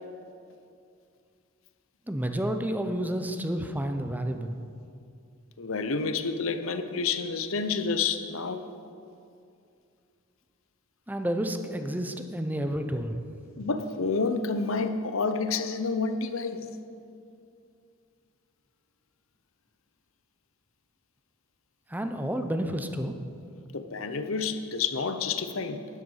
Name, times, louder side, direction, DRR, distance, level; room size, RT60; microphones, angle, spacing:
voice 1, 2.1-4.6 11.1-13.2 21.9-23.2, right 1 dB, 10° right, 7 dB, 0.7 m, -30 dB
voice 2, 5.6-8.6 13.6-16.7 23.7-25.9, left 4 dB, 65° left, 9 dB, 0.8 m, -29 dB
12.5 x 11.0 x 5.6 m, 2.5 s
head